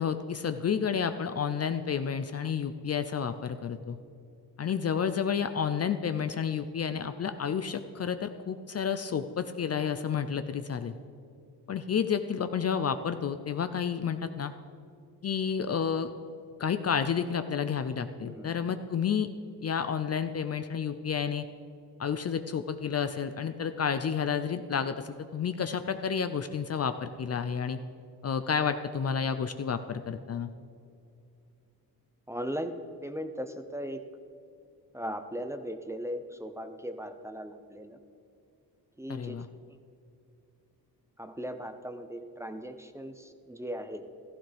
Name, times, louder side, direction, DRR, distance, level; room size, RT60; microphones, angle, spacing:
voice 1, 0.0-4.0 4.6-10.9 11.7-14.5 15.2-16.1 16.6-19.3 19.6-21.4 22.0-27.8 28.2-30.5 39.1-39.5, left 7 dB, 40° left, 9 dB, 0.5 m, -30 dB
voice 2, 18.2-18.7 22.5-22.6 32.3-34.0 34.9-38.0 39.0-39.4 41.2-44.0, equal, 5° right, 8 dB, 0.6 m, -38 dB
15.5 x 14.0 x 3.4 m, 2.6 s
wide cardioid pair, 115°, 38 cm